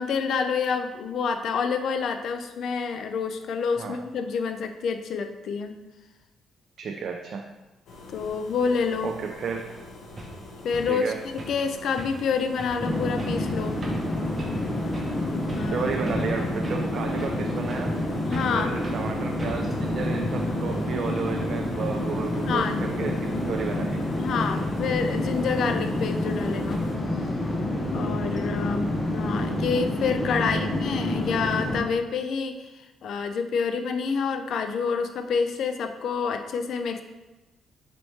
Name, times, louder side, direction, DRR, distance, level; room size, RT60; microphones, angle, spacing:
voice 1, 0.0-5.8 8.1-9.1 10.6-11.1 11.5-13.8 15.6-15.9 18.3-18.7 22.5-22.8 23.3-23.4 24.1-26.8 27.9-37.0, left 5 dB, 65° left, 7 dB, 0.4 m, -28 dB
voice 2, 6.8-7.5 9.0-9.7 10.8-11.2 15.7-18.0 18.5-24.0 30.4-30.6, right 6 dB, 60° right, 3 dB, 0.3 m, -32 dB
sound 1, 7.9-26.9, left 2 dB, 85° left, 0.8 m, -45 dB
sound 2, 9.7-9.8 10.2-10.4 10.7-11.0 11.4-11.7 12.0-12.3 12.6-12.8 13.2-13.4 13.8-14.1 14.4-14.6 14.9-15.2 15.5-16.3 16.6-17.4 17.7-18.0 18.3-18.6 18.8-19.0 19.4-19.8, right 1 dB, 30° right, 0.8 m, -40 dB
sound 3, 12.8-31.8, left 1 dB, 25° left, 0.6 m, -28 dB
4.1 x 3.1 x 3.2 m, 1.1 s
cardioid pair, 90°, 0 cm